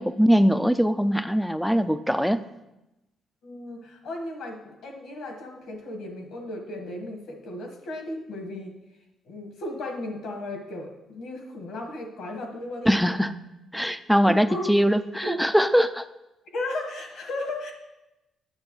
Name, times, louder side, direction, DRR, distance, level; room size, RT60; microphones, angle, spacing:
voice 1, 0.0-2.4 12.9-13.4 13.7-16.1, equal, ahead, 12 dB, 0.4 m, -21 dB
voice 2, 3.4-8.7 9.2-13.2 14.2-14.7 15.2-15.4 16.5-17.7, left 1 dB, 75° left, 2 dB, 1.5 m, -35 dB
9.7 x 6.8 x 3.2 m, 0.97 s
cardioid pair, 90°, 0 cm